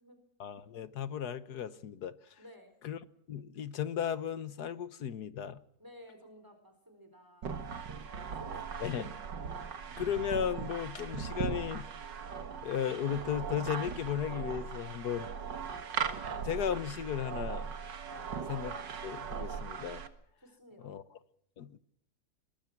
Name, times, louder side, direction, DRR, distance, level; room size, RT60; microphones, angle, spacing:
voice 1, 0.4-2.2 2.8-3.0 3.3-5.6 8.8-9.1 10.0-11.9 12.6-15.2 16.4-17.7 18.5-18.7 19.0-20.0 20.8-21.0 21.6-21.8, left 9 dB, 65° left, 1.6 m, -35 dB
voice 2, 2.4-2.7 5.8-9.0 15.1-15.5 18.1-18.5 20.4-20.9, equal, 10° right, 4.5 m, -55 dB
sound 1, 7.4-20.1, right 6 dB, 90° right, 2.3 m, -39 dB
23.0 x 22.5 x 6.1 m
omnidirectional pair, 1.9 m